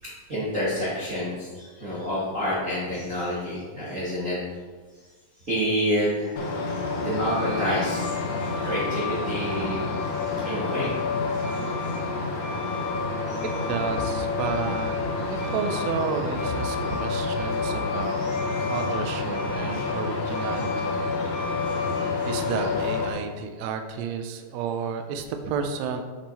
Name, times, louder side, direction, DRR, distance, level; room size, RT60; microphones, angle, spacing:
voice 1, 0.0-4.4 5.4-6.4 7.0-9.9 10.4-10.9 11.4-11.7 13.3-13.4 18.2-18.8 21.7-21.9, equal, 35° right, -9 dB, 1.4 m, -29 dB
Truck, 6.4-23.1, left 3 dB, 70° left, 2.4 m, -28 dB
voice 2, 13.7-15.0 15.3-18.2 18.7-21.0 22.2-26.0, right 6 dB, 85° right, 6 dB, 1.5 m, -31 dB
7.7 x 5.5 x 4.3 m, 1.4 s
omnidirectional pair, 3.8 m